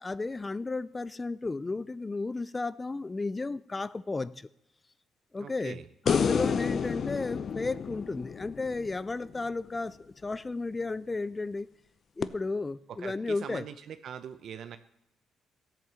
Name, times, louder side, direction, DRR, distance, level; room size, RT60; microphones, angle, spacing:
voice 1, 0.0-4.5 5.3-5.8 6.1-11.7 12.2-13.7, left 3 dB, 25° left, 0.4 m, -33 dB
voice 2, 5.4-5.8 13.0-14.8, right 8 dB, 65° right, 0.7 m, -42 dB
sound 1, 6.1-9.4 12.2-12.3, left 6 dB, 55° left, 0.7 m, -30 dB
14.0 x 9.0 x 7.3 m
cardioid pair, 90°, 0 cm